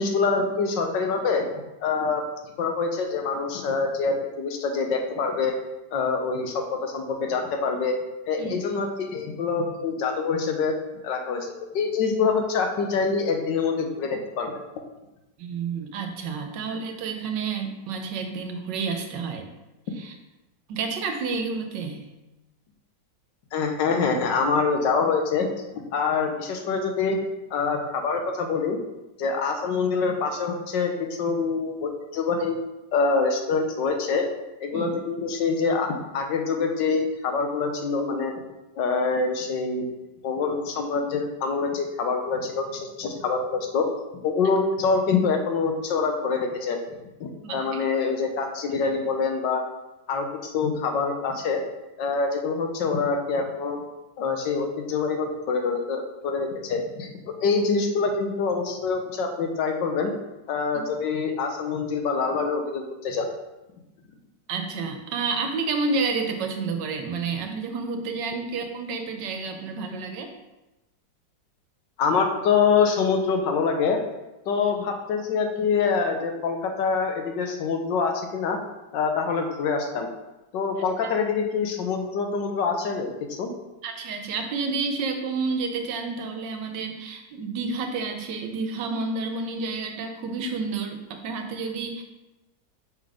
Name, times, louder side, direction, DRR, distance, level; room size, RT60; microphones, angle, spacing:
voice 1, 0.0-1.4 1.8-2.2 2.6-5.5 5.9-7.9 8.3-10.7 11.0-14.6 23.5-25.5 25.7-27.2 27.5-28.8 29.2-32.5 32.9-34.2 34.6-38.3 38.8-39.9 40.2-43.9 44.2-46.8 47.2-49.6 50.1-51.6 52.0-53.8 54.2-60.1 60.5-63.3 72.0-74.0 74.5-78.6 78.9-80.1 80.5-83.1 83.4-83.5, left 5 dB, 80° left, 3 dB, 1.5 m, -25 dB
voice 2, 15.4-19.5 20.0-20.1 20.7-22.1 34.7-34.9 47.4-47.8 48.8-48.9 60.7-60.8 64.5-70.3 81.0-81.1 83.8-92.0, right 4 dB, 75° right, 5 dB, 1.4 m, -30 dB
5.7 x 4.0 x 4.9 m, 1.0 s
omnidirectional pair, 1.9 m